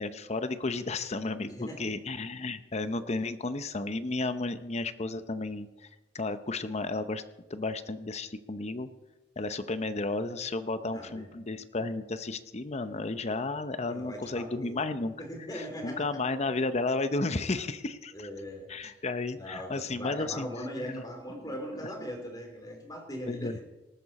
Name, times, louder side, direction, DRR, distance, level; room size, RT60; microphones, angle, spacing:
voice 1, 0.0-5.7 6.1-7.2 7.5-8.9 9.4-15.1 15.5-18.3 18.7-20.5 20.8-21.0 23.3-23.6, left 3 dB, 35° left, 11 dB, 0.8 m, -33 dB
voice 2, 1.5-1.8 10.8-11.3 13.9-14.8 15.2-16.2 16.5-16.6 18.1-18.9 19.4-23.6, equal, 20° left, 3 dB, 3.2 m, -40 dB
19.5 x 13.5 x 4.2 m, 1.1 s
head